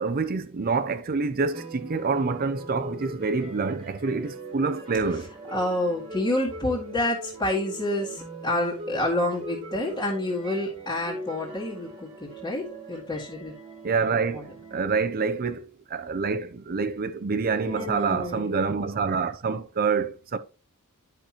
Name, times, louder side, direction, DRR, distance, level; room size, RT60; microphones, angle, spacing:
voice 1, 0.0-5.3 13.8-20.4, right 4 dB, 40° right, 0.6 m, -27 dB
sound 1, 1.5-14.8, right 2 dB, 25° right, 1.7 m, -41 dB
voice 2, 5.5-13.5 14.3-14.4 17.6-18.7, left 1 dB, 20° left, 2.0 m, -28 dB
10.5 x 5.9 x 3.0 m
head